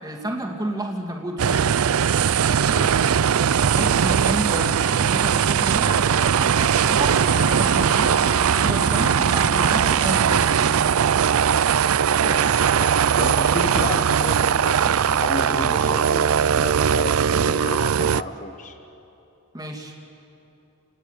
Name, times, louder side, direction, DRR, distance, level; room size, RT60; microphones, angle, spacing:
voice 1, 0.0-1.6 3.7-10.9 19.5-19.9, right 1 dB, 20° right, 1 dB, 2.6 m, -31 dB
sound 1, 1.4-18.2, right 7 dB, 70° right, 0.5 m, -20 dB
sound 2, 6.9-10.8, left 5 dB, 65° left, 1.0 m, -34 dB
voice 2, 12.2-18.8, left 2 dB, 35° left, 6 dB, 1.1 m, -32 dB
29.0 x 19.5 x 8.3 m, 2.9 s
head